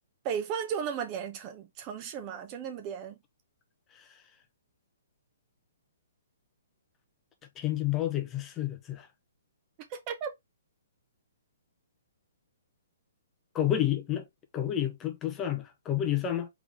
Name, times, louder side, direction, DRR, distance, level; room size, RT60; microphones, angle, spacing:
voice 1, 0.2-3.1 9.9-10.3, right 7 dB, 30° right, 0.9 m, -35 dB
voice 2, 7.6-9.1 13.5-14.2 14.5-16.5, left 11 dB, 20° left, 0.8 m, -29 dB
3.7 x 3.5 x 3.4 m
figure-of-eight pair, 125°, 0 cm